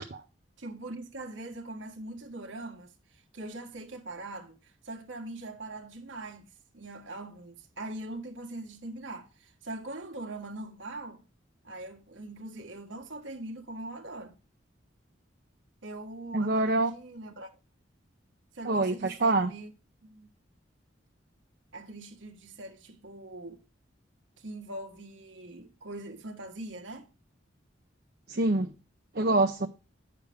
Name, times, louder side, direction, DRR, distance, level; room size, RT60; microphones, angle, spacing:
voice 1, 0.6-2.9 3.3-6.5 6.7-11.2 11.6-14.3 15.8-17.5 18.5-19.7 20.0-20.3 21.7-23.6 24.4-27.1, right 2 dB, 80° right, 1.6 m, -42 dB
voice 2, 16.3-16.9 18.6-19.5 28.3-28.7 29.1-29.7, right 2 dB, 50° right, 0.7 m, -25 dB
9.8 x 6.7 x 3.5 m
head